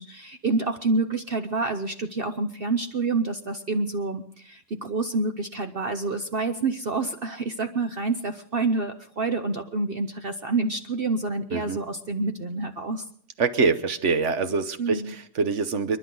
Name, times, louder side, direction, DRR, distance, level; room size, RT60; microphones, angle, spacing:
voice 1, 0.0-13.0 14.8-15.1, right 3 dB, 65° right, 8 dB, 0.5 m, -28 dB
voice 2, 13.4-16.0, right 4 dB, 50° right, 11 dB, 1.0 m, -25 dB
29.5 x 11.0 x 3.8 m, 0.62 s
omnidirectional pair, 2.0 m